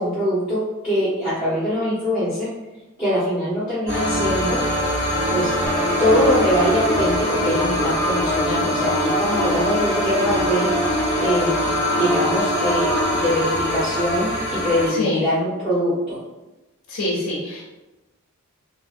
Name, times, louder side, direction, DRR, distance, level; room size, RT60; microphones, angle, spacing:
voice 1, 0.0-2.5 3.0-4.6 5.3-5.5 6.0-16.2, equal, 5° right, -10 dB, 0.7 m, -23 dB
sound 1, 3.9-14.9, equal, 55° right, 1.5 m, -24 dB
sound 2, 5.7-13.0, left 1 dB, 10° left, 0.3 m, -26 dB
voice 2, 16.9-17.6, left 1 dB, 70° left, -4 dB, 0.6 m, -24 dB
2.7 x 2.7 x 2.4 m, 1.1 s
head